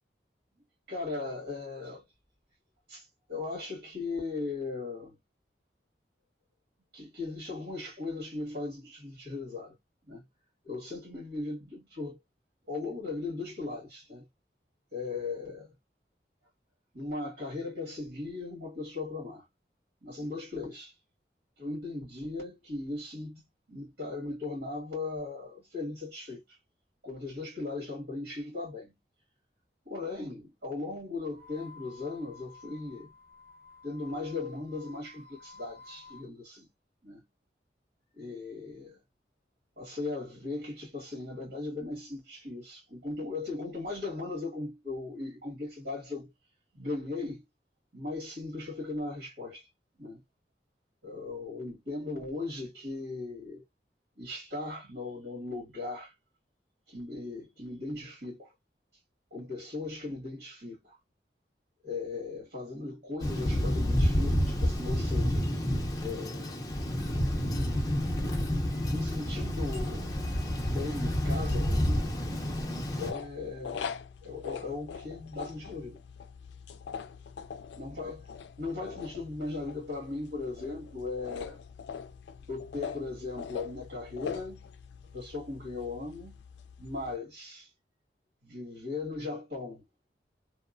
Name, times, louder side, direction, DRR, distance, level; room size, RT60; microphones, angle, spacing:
voice 1, 0.9-2.0 2.9-5.1 6.9-9.8 10.1-10.2 10.6-12.2 12.7-14.3 14.9-15.7 16.9-19.4 20.0-20.9 21.6-23.4 23.7-26.6 27.0-29.0 29.8-33.1 33.8-36.7 37.0-37.2 38.1-39.0 39.8-46.3 46.7-47.4 47.9-49.7 50.0-50.2 51.0-53.6 54.2-56.1 56.9-58.5 59.3-61.0 61.8-65.5 66.0-66.6 68.9-72.2 73.0-76.0 77.8-78.2 78.6-81.6 82.5-84.6 85.1-86.4 86.8-87.7 88.4-89.8, left 3 dB, 85° right, 1.7 m, -38 dB
sound 1, 31.3-36.3, left 4 dB, 55° left, 0.7 m, -53 dB
Thunder, 63.2-73.1, equal, 20° left, 0.6 m, -29 dB
sound 2, 73.0-87.2, left 6 dB, 85° left, 0.3 m, -43 dB
2.8 x 2.0 x 2.4 m
head